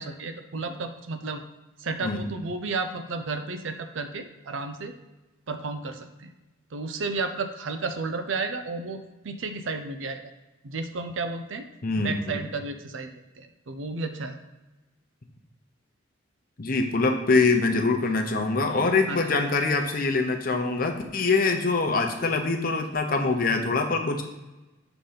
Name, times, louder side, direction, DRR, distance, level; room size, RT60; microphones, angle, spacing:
voice 1, 0.0-1.4 1.8-4.9 5.5-6.3 6.7-10.3 10.6-11.6 12.0-13.1 13.4-14.4 19.0-19.3, right 3 dB, 70° right, 8 dB, 0.5 m, -32 dB
voice 2, 11.8-12.4 16.6-24.2, left 3 dB, 45° left, 4 dB, 0.8 m, -24 dB
6.9 x 3.8 x 5.6 m, 1.1 s
head